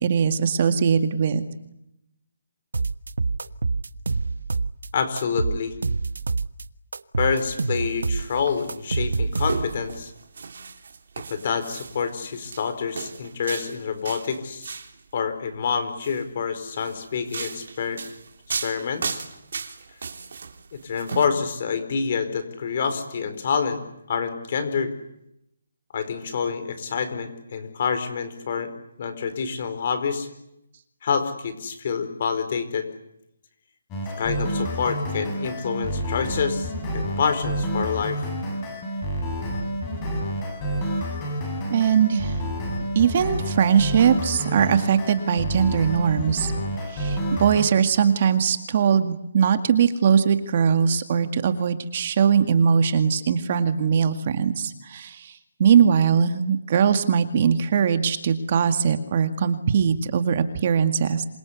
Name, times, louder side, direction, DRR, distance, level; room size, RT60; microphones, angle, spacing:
voice 1, 0.0-1.5 41.7-42.4 43.0-46.5 46.9-61.2, right 7 dB, 35° right, 9 dB, 1.9 m, -21 dB
sound 1, 2.7-4.9 5.2-6.6 6.9-9.9, right 4 dB, 85° right, 1.3 m, -26 dB
voice 2, 4.9-5.7 7.2-10.1 11.3-14.8 15.1-18.0 18.6-19.2 20.7-23.8 24.1-24.9 25.9-28.7 29.0-30.3 31.0-32.9 34.2-38.2, left 6 dB, 40° left, 10 dB, 4.6 m, -27 dB
sound 2, 7.5-15.0 15.8-16.2 16.8-21.3, right 5 dB, 60° right, 3.3 m, -36 dB
sound 3, 33.9-47.7, equal, 15° left, 6.8 m, -29 dB
27.5 x 24.0 x 8.4 m, 0.80 s
hypercardioid pair, 170°, 0 cm